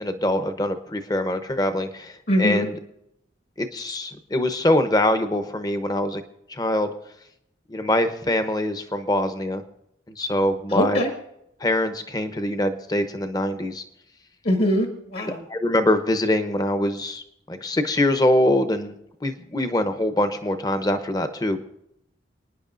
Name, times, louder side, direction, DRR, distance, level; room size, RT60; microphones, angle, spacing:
voice 1, 0.0-2.8 3.6-6.2 6.5-6.9 7.7-9.6 10.1-11.0 11.6-13.8 15.2-18.9 19.2-21.6, left 1 dB, 20° left, 8 dB, 0.8 m, -23 dB
voice 2, 2.3-2.7 10.7-11.1 14.5-15.4, equal, 60° left, 2 dB, 1.8 m, -22 dB
29.5 x 9.9 x 2.6 m, 0.79 s
head